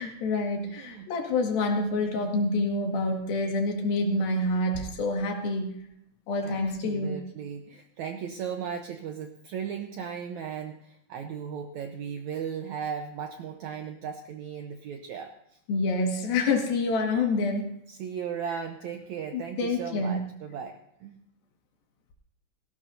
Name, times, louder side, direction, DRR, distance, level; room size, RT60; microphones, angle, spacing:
voice 1, 0.0-5.8 6.3-7.2 15.7-17.7 19.3-20.2, left 2 dB, 80° left, 2 dB, 3.8 m, -27 dB
voice 2, 0.7-1.1 6.4-15.6 17.9-21.2, right 7 dB, 75° right, 5 dB, 1.8 m, -37 dB
18.5 x 16.0 x 2.7 m, 0.79 s
omnidirectional pair, 4.1 m